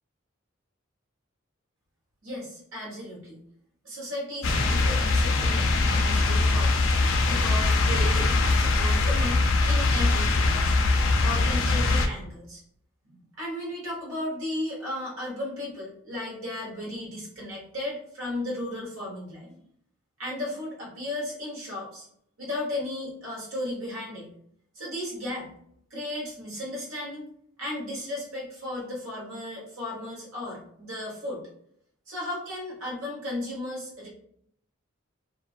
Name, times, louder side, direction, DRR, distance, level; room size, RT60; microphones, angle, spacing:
voice 1, 2.2-3.4 3.8-6.9 7.3-10.7 11.2-12.6 13.1-19.5 20.2-22.1 22.4-24.3 24.7-25.5 25.9-27.3 27.6-31.4 32.1-34.1, left 1 dB, 75° right, -4 dB, 1.1 m, -35 dB
sound 1, 4.4-12.1, left 3 dB, 65° left, 0.3 m, -22 dB
2.4 x 2.2 x 2.5 m, 0.68 s
head